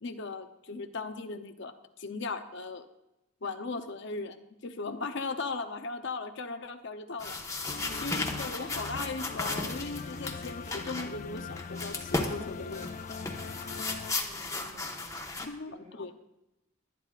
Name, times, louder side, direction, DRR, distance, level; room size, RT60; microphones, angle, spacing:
voice 1, 0.0-1.7 2.0-2.9 3.4-7.4 7.9-12.9 15.4-16.1, left 3 dB, 65° left, 7 dB, 0.8 m, -38 dB
sound 1, 7.2-15.5, left 2 dB, 15° left, 1.3 m, -36 dB
sound 2, 7.7-14.1, left 4 dB, 40° left, 0.5 m, -41 dB
voice 2, 7.8-8.4 13.6-15.2 15.6-16.1, right 1 dB, 35° right, -4 dB, 4.3 m, -56 dB
24.0 x 9.9 x 2.5 m, 0.90 s
head